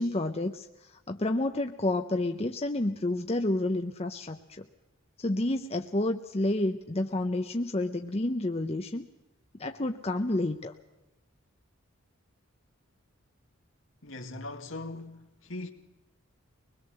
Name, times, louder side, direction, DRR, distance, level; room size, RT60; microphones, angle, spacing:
voice 1, 0.0-4.7 5.2-9.1 9.6-10.7, left 1 dB, 30° left, 0.8 m, -30 dB
voice 2, 14.0-15.7, left 2 dB, 65° left, 2.2 m, -40 dB
23.5 x 21.0 x 7.7 m
head